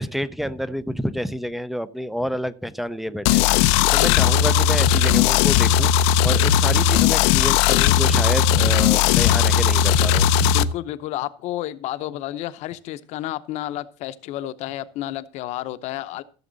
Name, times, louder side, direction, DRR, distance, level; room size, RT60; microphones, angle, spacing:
voice 1, 0.0-10.6, equal, ahead, 0.4 m, -29 dB
sound 1, 3.2-10.6, left 9 dB, 85° left, 0.6 m, -17 dB
voice 2, 10.5-16.2, left 14 dB, 50° left, 0.7 m, -31 dB
14.5 x 7.1 x 3.9 m
cardioid pair, 160°, 14 cm